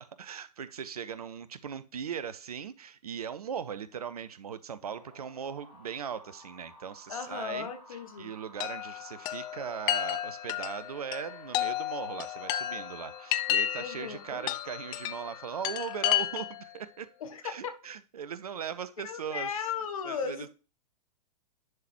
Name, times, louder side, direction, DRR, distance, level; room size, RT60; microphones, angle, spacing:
voice 1, 0.0-7.7 8.2-17.1 17.4-19.5 20.0-20.5, right 7 dB, 65° right, 0.7 m, -39 dB
sound 1, 4.8-16.2, equal, 75° left, 4.1 m, -55 dB
voice 2, 7.1-8.3 13.8-14.5 17.2-17.7 19.0-20.5, left 7 dB, 55° left, 1.3 m, -36 dB
Chime, 8.6-16.7, left 13 dB, 20° left, 0.4 m, -32 dB
10.5 x 3.8 x 3.0 m
figure-of-eight pair, 105°, 20 cm